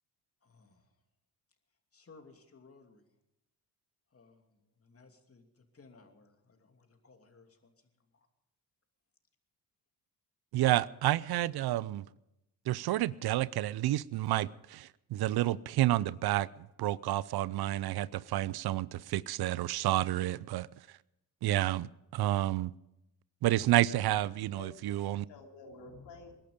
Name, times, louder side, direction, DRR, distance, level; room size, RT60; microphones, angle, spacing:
voice 1, 0.4-1.0 1.9-3.1 4.1-8.3, left 4 dB, 35° left, 2.7 m, -60 dB
voice 2, 10.5-12.0 12.7-16.5 16.8-20.7 21.4-22.7 23.4-25.2, right 15 dB, 65° right, 0.6 m, -30 dB
voice 3, 24.1-26.3, left 4 dB, 75° left, 3.1 m, -51 dB
21.5 x 11.5 x 5.1 m
supercardioid pair, 70°, 40 cm